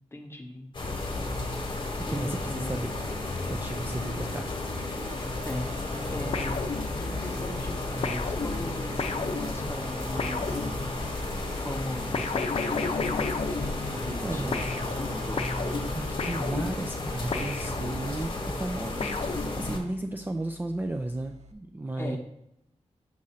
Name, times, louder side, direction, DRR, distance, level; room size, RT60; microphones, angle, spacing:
voice 1, 0.1-0.7 1.3-1.4 2.1-2.8 5.4-10.6 11.6-13.3 13.9-15.5 22.0-22.2, left 1 dB, 20° left, 3 dB, 0.9 m, -38 dB
sound 1, 0.7-19.8, left 2 dB, 45° left, 1.1 m, -33 dB
voice 2, 2.0-2.9 3.5-4.5 14.2-14.7 15.9-22.2, right 2 dB, 15° right, 4 dB, 0.3 m, -34 dB
sound 2, 2.5-21.5, right 3 dB, 70° right, 0.6 m, -46 dB
sound 3, 6.3-7.3 8.0-11.2 12.1-14.2 14.5-18.3 19.0-20.0, left 4 dB, 60° left, 0.6 m, -33 dB
7.3 x 2.5 x 5.6 m, 0.79 s
wide cardioid pair, 95°, 12 cm